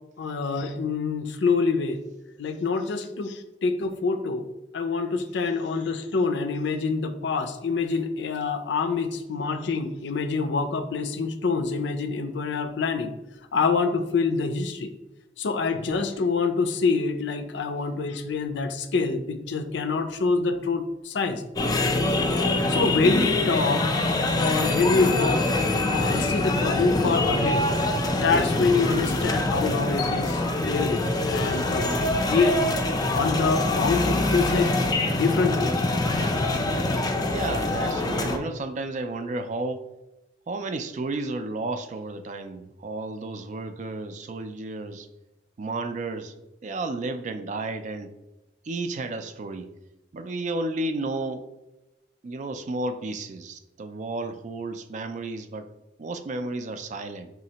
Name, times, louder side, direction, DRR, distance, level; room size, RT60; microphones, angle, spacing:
voice 1, 0.2-2.0 2.4-4.5 4.7-13.1 13.5-14.9 15.4-21.4 22.7-23.9 24.4-25.4 25.9-27.7 28.1-32.0 32.3-32.7 33.1-34.7 35.1-35.7, left 4 dB, 85° left, 8 dB, 0.5 m, -26 dB
sound 1, 21.6-38.4, left 2 dB, 20° left, 0.4 m, -24 dB
voice 2, 37.2-39.8 40.5-45.1 45.6-46.3 46.6-48.1 48.6-49.7 50.1-51.5 52.2-55.7 56.0-57.3, right 2 dB, 45° right, 9 dB, 0.3 m, -32 dB
4.9 x 3.1 x 2.8 m, 0.97 s
head